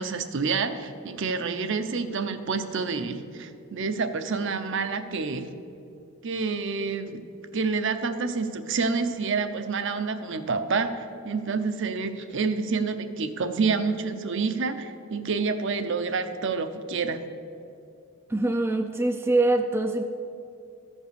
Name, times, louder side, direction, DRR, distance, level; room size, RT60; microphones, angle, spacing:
voice 1, 0.0-5.5 6.2-7.2 7.5-17.2, right 4 dB, 55° right, 9 dB, 0.6 m, -28 dB
voice 2, 18.3-20.0, right 2 dB, 10° right, 5 dB, 0.3 m, -24 dB
14.0 x 5.4 x 6.7 m, 2.7 s
head